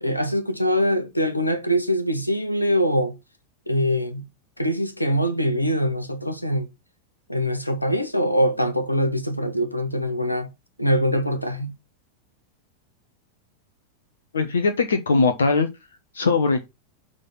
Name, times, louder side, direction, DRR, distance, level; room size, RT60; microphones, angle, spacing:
voice 1, 0.0-3.1 3.7-4.3 4.6-6.7 7.3-10.5 10.8-11.7, equal, 85° left, 1.3 m, -23 dB
voice 2, 14.3-15.7 16.1-16.7, left 4 dB, 70° left, 1.0 m, -20 dB
6.7 x 3.7 x 5.7 m
figure-of-eight pair, 90°, 0 cm